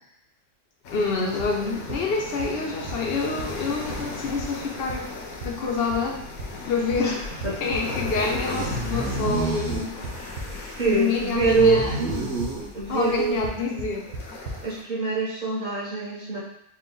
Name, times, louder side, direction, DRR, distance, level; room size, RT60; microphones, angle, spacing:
sound 1, 0.8-14.8, left 3 dB, 75° left, 1.1 m, -38 dB
voice 1, 0.9-5.1 5.4-6.2 6.6-7.2 7.6-10.0 10.9-12.0 12.9-14.1, left 4 dB, 55° left, 1 dB, 0.7 m, -27 dB
sound 2, 1.4-1.5 1.9-2.0 2.4-2.5 2.9-3.0 3.4-3.5 3.9-4.0 4.4-4.5 4.9-5.0 5.4-5.5 5.9-6.0 6.4-6.5 6.9-7.0 7.4-8.4 9.4-10.5 11.4-11.5 11.8-12.1 12.4-12.5 13.4-13.5 13.8-13.9 14.1-14.2 14.4-14.6, right 3 dB, 80° right, 1.3 m, -33 dB
sound 3, 4.4-4.5 4.8-4.9 5.3-5.4 5.9-6.0 6.1-6.5 7.1-7.3 7.8-7.9 8.2-13.3, right 2 dB, 55° right, 1.4 m, -30 dB
voice 2, 10.5-11.9 12.7-13.4 14.6-16.4, right 3 dB, 35° right, -6 dB, 0.9 m, -24 dB
4.3 x 2.3 x 3.7 m, 0.75 s
omnidirectional pair, 1.5 m